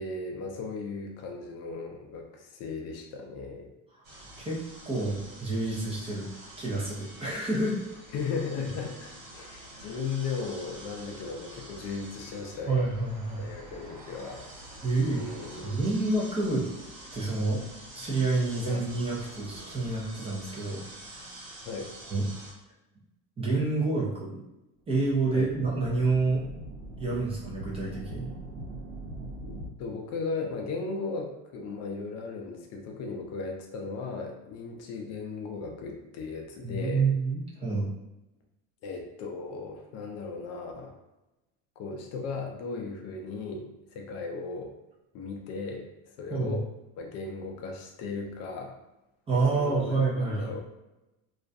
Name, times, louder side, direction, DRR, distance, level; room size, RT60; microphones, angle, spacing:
voice 1, 0.0-3.7 8.1-12.9 13.4-14.5 15.1-15.8 18.7-18.9 21.6-21.9 25.3-25.5 29.4-37.1 38.8-40.9 41.8-44.7 45.1-46.7 47.0-48.7 49.3-50.6, left 4 dB, 45° left, 2 dB, 0.4 m, -36 dB
sound 1, 4.0-22.5, right 1 dB, 65° right, 1.1 m, -47 dB
voice 2, 4.8-6.3 6.6-7.7 12.7-13.5 14.8-15.2 15.6-16.7 17.1-17.6 17.9-20.8 21.1-21.2 22.1-22.3 23.4-24.4 24.9-26.4 27.0-28.3 36.6-37.9 46.3-46.6 49.3-50.5, right 3 dB, 15° right, -5 dB, 0.4 m, -28 dB
sound 2, 25.0-29.7, right 2 dB, 90° right, 0.7 m, -42 dB
2.3 x 2.1 x 2.5 m, 0.94 s
supercardioid pair, 125°, 37 cm